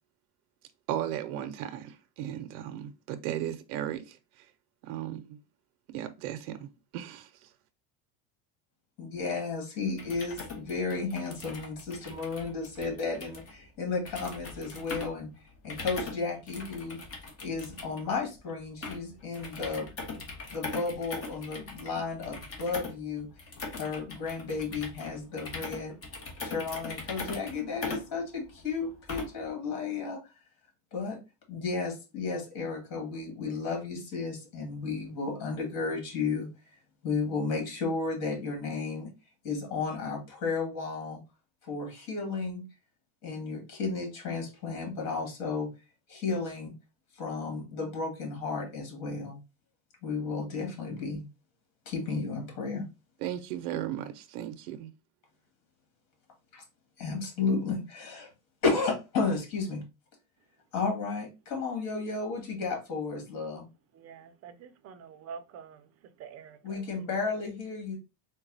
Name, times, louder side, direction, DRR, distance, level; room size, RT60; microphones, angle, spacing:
voice 1, 0.9-4.5 4.8-5.4 5.9-7.5 53.2-54.9, right 11 dB, 80° right, 0.6 m, -36 dB
voice 2, 9.0-15.3 15.6-17.0 17.4-20.2 20.5-23.3 23.7-26.0 26.4-30.2 30.9-31.2 31.5-39.1 39.4-41.2 41.6-42.6 43.2-45.7 46.1-46.7 47.2-49.4 50.0-51.3 51.9-52.9 56.5-56.6 57.0-58.3 58.6-59.8 60.7-63.7 66.6-68.0, left 4 dB, 50° left, 2.0 m, -33 dB
sound 1, 9.9-29.5, left 3 dB, 30° left, 1.1 m, -41 dB
voice 3, 64.0-65.8 66.2-66.8 67.2-67.3, right 6 dB, 35° right, 0.6 m, -46 dB
3.9 x 2.3 x 3.9 m
supercardioid pair, 130°, 43 cm